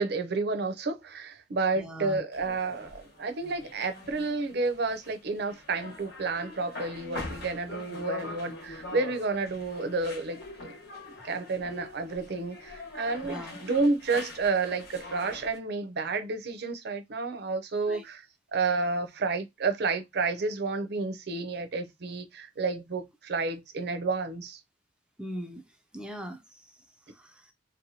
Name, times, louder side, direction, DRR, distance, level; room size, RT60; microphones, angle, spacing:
voice 1, 0.0-10.7 11.2-18.2 18.5-24.6, right 3 dB, 60° right, 0.5 m, -30 dB
voice 2, 1.7-2.2 13.2-13.6 17.9-18.0 25.2-25.6 25.9-27.5, equal, 5° right, 0.4 m, -41 dB
sound 1, 2.3-15.6, left 3 dB, 60° left, 1.0 m, -43 dB
2.8 x 2.2 x 2.7 m
head